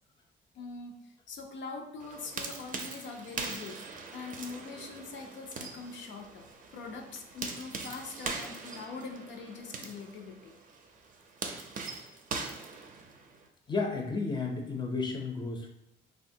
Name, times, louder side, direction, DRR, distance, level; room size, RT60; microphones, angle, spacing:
voice 1, 0.5-3.8 4.1-6.5 6.7-10.5, left 4 dB, 70° left, 3 dB, 0.6 m, -43 dB
sound 1, 2.0-13.5, right 4 dB, 40° right, 0.5 m, -42 dB
voice 2, 13.7-15.7, left 4 dB, 20° left, 2 dB, 0.6 m, -32 dB
3.1 x 2.2 x 2.7 m, 0.80 s
cardioid pair, 90°, 20 cm